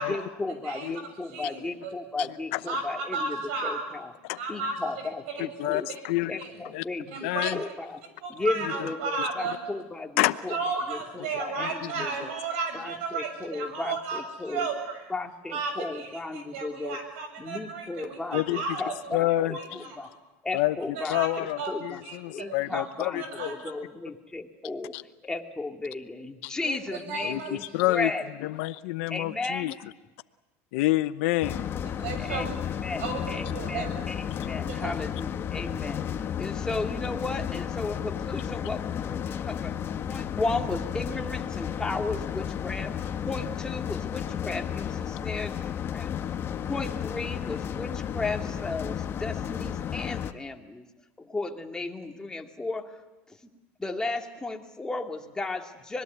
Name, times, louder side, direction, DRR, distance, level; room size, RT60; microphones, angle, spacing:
voice 1, 0.0-4.1 4.5-5.9 6.3-8.0 8.3-10.6 10.9-12.4 12.7-14.7 15.1-17.0 17.4-20.1 20.4-22.0 22.3-24.9 25.2-28.3 29.1-29.7 32.2-36.0 36.4-39.8 40.1-42.9 43.2-46.1 46.6-50.9 51.2-52.9 53.3-53.5 53.8-56.0, left 3 dB, 10° left, 3 dB, 2.3 m, -35 dB
voice 2, 1.3-1.9 2.7-3.9 4.4-4.8 5.7-5.8 6.4-6.5 7.1-7.5 8.2-9.6 10.5-15.1 15.5-18.8 19.3-20.1 21.0-21.3 21.6-21.7 22.0-22.8 23.2-23.7 26.6-27.5 27.9-28.1 31.9-32.5 33.0-34.0 34.7-34.9, right 4 dB, 80° right, 6 dB, 7.3 m, -34 dB
voice 3, 5.6-6.3 6.7-6.8 7.2-7.6 10.2-10.4 11.6-11.9 18.3-18.6 19.1-19.5 20.5-20.8 21.0-23.5 24.9-25.0 26.4-26.5 27.2-28.1 28.4-29.7 30.7-31.8, left 17 dB, 75° left, 13 dB, 0.8 m, -28 dB
sound 1, 31.4-50.3, left 9 dB, 35° left, 1.2 m, -33 dB
25.5 x 21.0 x 8.1 m, 1.1 s
supercardioid pair, 120°, 7 cm